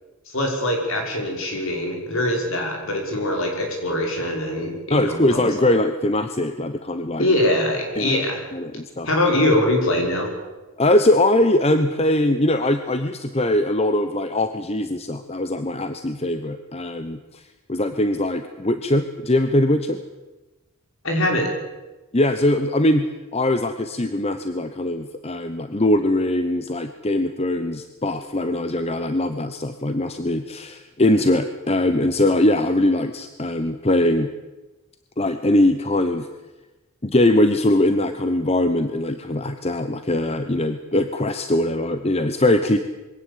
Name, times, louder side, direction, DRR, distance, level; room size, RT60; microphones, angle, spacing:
voice 1, 0.3-5.4 7.2-8.4 9.0-10.3 21.0-21.5, left 1 dB, 60° left, 2 dB, 5.8 m, -22 dB
voice 2, 4.9-7.3 8.0-8.2 8.5-9.1 10.8-17.4 17.7-20.0 22.1-23.1 23.3-34.3 35.2-36.3 37.0-42.8, left 1 dB, 30° left, 9 dB, 0.9 m, -21 dB
23.0 x 17.0 x 8.5 m, 1.1 s
head